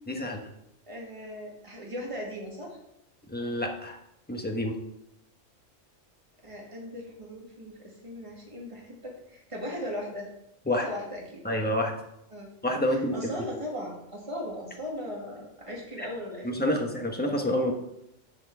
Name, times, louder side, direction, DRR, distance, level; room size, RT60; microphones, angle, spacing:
voice 1, 0.1-0.4 3.3-4.0 4.3-4.8 10.7-10.9 11.4-11.9 12.6-13.1 16.4-17.7, left 1 dB, 10° left, 1 dB, 1.1 m, -28 dB
voice 2, 0.9-2.8 6.4-10.3 10.8-11.4 12.3-12.5 12.9-16.7, equal, 25° right, -2 dB, 2.2 m, -38 dB
7.8 x 4.4 x 7.1 m, 0.82 s
omnidirectional pair, 1.4 m